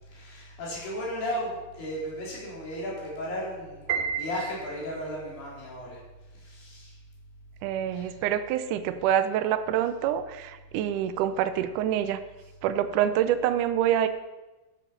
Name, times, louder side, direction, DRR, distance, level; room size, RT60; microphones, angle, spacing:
voice 1, 0.1-6.0 6.3-7.0 7.9-8.2, equal, 80° left, -6 dB, 6.0 m, -35 dB
Piano, 3.9-5.2, right 7 dB, 65° right, 2.6 m, -32 dB
voice 2, 7.6-12.2 12.6-14.1, right 10 dB, 90° right, 10 dB, 1.8 m, -26 dB
13.0 x 8.4 x 5.3 m, 1.1 s
omnidirectional pair, 4.5 m